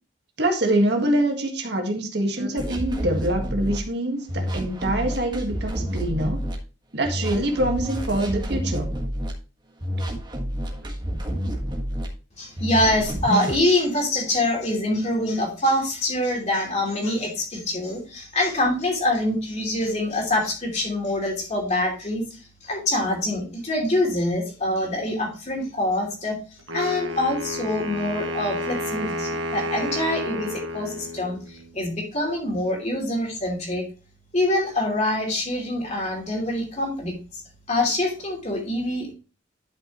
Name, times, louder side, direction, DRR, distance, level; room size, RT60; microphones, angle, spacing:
voice 1, 0.4-6.4 6.9-8.9, right 1 dB, 55° right, 3 dB, 1.7 m, -24 dB
sound 1, 2.6-3.8 4.3-6.5 7.0-9.3 9.8-12.1 12.6-13.6, equal, 20° right, 1.6 m, -29 dB
voice 2, 12.4-26.4 26.7-33.8 34.3-37.4 37.7-39.1, left 1 dB, 35° left, 0 dB, 2.9 m, -25 dB
Wind instrument woodwind instrument, 26.7-31.7, left 1 dB, 75° right, 1.4 m, -30 dB
11.5 x 5.9 x 3.0 m, 0.33 s
head